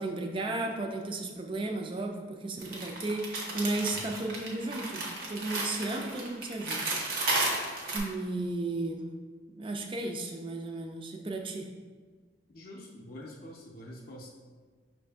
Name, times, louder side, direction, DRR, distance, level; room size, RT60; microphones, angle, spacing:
voice 1, 0.0-6.9 7.9-9.1 9.6-11.7, right 2 dB, 25° right, 3 dB, 0.4 m, -34 dB
sound 1, 2.6-8.0, right 2 dB, 50° right, 0.8 m, -33 dB
voice 2, 3.8-4.1 12.5-14.3, left 1 dB, 50° left, -2 dB, 0.5 m, -46 dB
5.7 x 2.6 x 3.4 m, 1.5 s
head